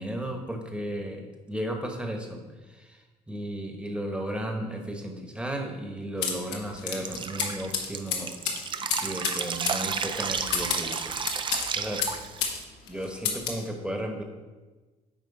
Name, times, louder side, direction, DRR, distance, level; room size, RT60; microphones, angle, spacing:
voice 1, 0.0-8.3 9.0-11.2 11.4-12.0 12.9-14.2, right 1 dB, 5° right, 3 dB, 1.1 m, -34 dB
sound 1, 6.2-12.6 12.9-13.6, left 6 dB, 90° left, 1.1 m, -31 dB
Drip, 7.0-12.6, right 6 dB, 30° right, 0.4 m, -32 dB
8.9 x 3.1 x 5.3 m, 1.3 s
cardioid pair, 110°, 17 cm